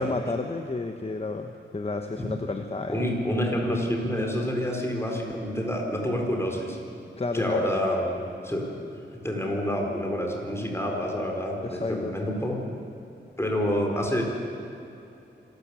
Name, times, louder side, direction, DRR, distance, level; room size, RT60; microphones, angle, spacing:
voice 1, 0.0-3.1 7.2-7.7 11.6-12.2, left 3 dB, 30° left, 6 dB, 1.1 m, -31 dB
voice 2, 2.9-6.8 7.3-8.9 9.2-12.6 13.4-14.2, equal, 15° left, 0 dB, 4.4 m, -28 dB
26.0 x 13.5 x 8.4 m, 2.8 s
wide cardioid pair, 85°, 19 cm